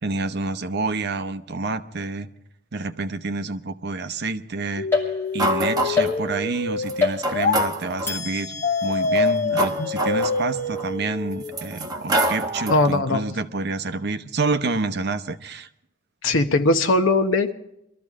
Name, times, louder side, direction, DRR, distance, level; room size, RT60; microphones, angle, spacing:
voice 1, 0.0-2.3 2.7-8.6 8.8-15.7, right 3 dB, 55° right, 10 dB, 0.8 m, -28 dB
sound 1, 4.8-7.6 8.6-11.6, left 3 dB, 40° left, 0.7 m, -26 dB
sound 2, 4.9-5.6 6.0-6.6 7.0-7.7 8.1-11.5, left 4 dB, 10° left, 2.5 m, -30 dB
sound 3, 5.4-6.2 6.9-7.0 7.2-8.2 9.0-10.9 11.4-12.9, right 1 dB, 20° right, 1.1 m, -26 dB
voice 2, 12.7-13.2 16.2-17.5, left 2 dB, 70° left, 8 dB, 1.0 m, -20 dB
22.5 x 13.5 x 3.6 m, 0.79 s
head